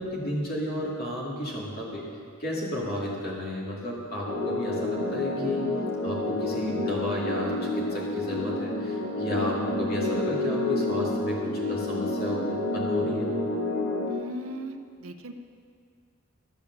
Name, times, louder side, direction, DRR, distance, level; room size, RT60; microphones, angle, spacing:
voice 1, 0.0-2.1 2.4-5.7 6.0-13.3, equal, 45° left, -4 dB, 2.4 m, -33 dB
sound 1, 4.3-14.1, left 2 dB, 65° left, 1.7 m, -29 dB
voice 2, 14.1-14.8 15.0-15.3, equal, 75° right, 8 dB, 0.7 m, -37 dB
13.5 x 7.1 x 6.6 m, 2.2 s
head